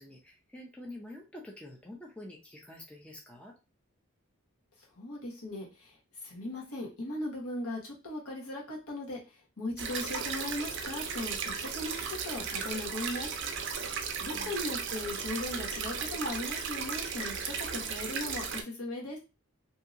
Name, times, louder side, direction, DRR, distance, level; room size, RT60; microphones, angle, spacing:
voice 1, 0.0-3.5 14.3-14.6, left 1 dB, 5° left, -1 dB, 0.4 m, -47 dB
voice 2, 5.0-5.9 6.2-9.2 9.6-13.3 14.2-19.2, left 1 dB, 80° left, -2 dB, 1.2 m, -38 dB
sound 1, 9.8-18.6, right 6 dB, 55° right, 0.5 m, -35 dB
2.7 x 2.7 x 2.5 m, 0.29 s
head